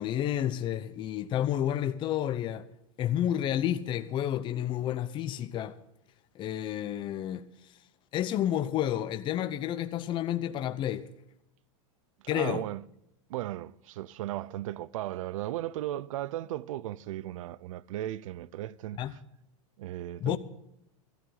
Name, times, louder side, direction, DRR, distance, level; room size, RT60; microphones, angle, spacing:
voice 1, 0.0-2.7 3.0-5.7 6.3-7.4 8.1-11.1 12.3-12.6 19.0-19.2 20.2-20.4, left 11 dB, 30° left, 0.7 m, -30 dB
voice 2, 12.3-12.8 13.3-19.2 19.8-20.4, right 14 dB, 75° right, 0.6 m, -36 dB
16.5 x 13.0 x 3.9 m
supercardioid pair, 140°, 17 cm